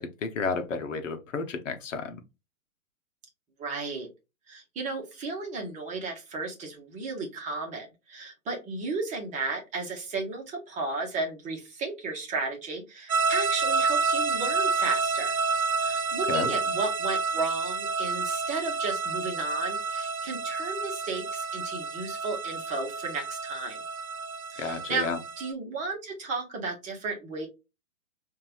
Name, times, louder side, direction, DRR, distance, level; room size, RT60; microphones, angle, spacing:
voice 1, 0.0-2.2 16.3-16.5 24.6-25.2, left 4 dB, 60° left, 1.0 m, -32 dB
voice 2, 3.6-4.1 4.5-15.4 15.8-23.8 24.5-25.1 25.4-27.5, right 3 dB, 15° right, 1.2 m, -34 dB
sound 1, 13.1-25.5, right 4 dB, 80° right, 0.9 m, -29 dB
5.5 x 2.7 x 2.5 m
figure-of-eight pair, 125°, 43 cm